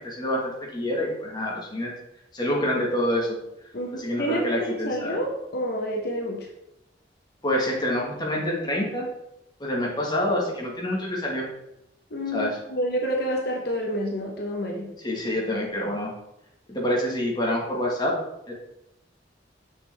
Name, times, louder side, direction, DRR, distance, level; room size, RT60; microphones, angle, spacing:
voice 1, 0.0-1.9 2.3-3.4 4.0-5.2 7.4-9.1 9.6-11.5 12.3-12.6 15.0-16.1 16.7-18.1 18.5-18.6, left 1 dB, 25° left, -2 dB, 1.6 m, -27 dB
voice 2, 3.7-6.5 12.1-14.9, equal, 60° left, 0 dB, 0.9 m, -29 dB
6.3 x 6.0 x 3.4 m, 0.85 s
head